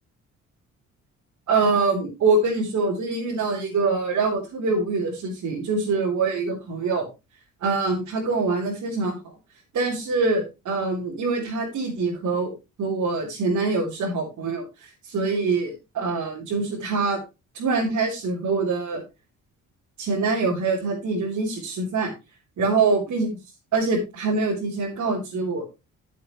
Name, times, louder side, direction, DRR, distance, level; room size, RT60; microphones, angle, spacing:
voice 1, 1.5-7.1 7.6-9.2 9.7-12.5 12.8-17.2 17.5-19.0 20.0-22.1 22.6-23.4 23.7-25.6, right 3 dB, 65° right, -4 dB, 4.1 m, -24 dB
13.5 x 7.5 x 3.2 m, 0.26 s
cardioid pair, 90°, 30 cm